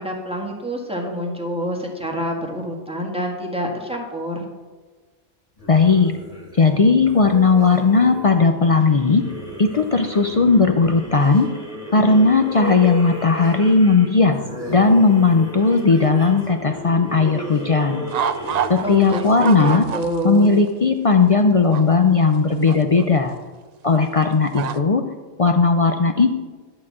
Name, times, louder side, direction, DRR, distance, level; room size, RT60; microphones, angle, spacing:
voice 1, 0.0-4.5 18.8-20.5, equal, 5° right, 0 dB, 1.4 m, -27 dB
sound 1, 5.6-20.5, equal, 30° left, 2.3 m, -34 dB
voice 2, 5.7-6.1 6.6-9.2 9.6-11.5 11.9-14.4 14.7-18.0 18.7-19.9 20.2-23.3 23.8-25.0 25.4-26.3, left 4 dB, 55° left, 6 dB, 0.3 m, -16 dB
sound 2, 18.1-18.8 19.1-20.4 20.7-20.8 21.7-21.8 22.7-23.0 24.6-24.8, right 8 dB, 85° right, 0.3 m, -25 dB
11.0 x 4.0 x 7.4 m, 1.4 s
omnidirectional pair, 1.3 m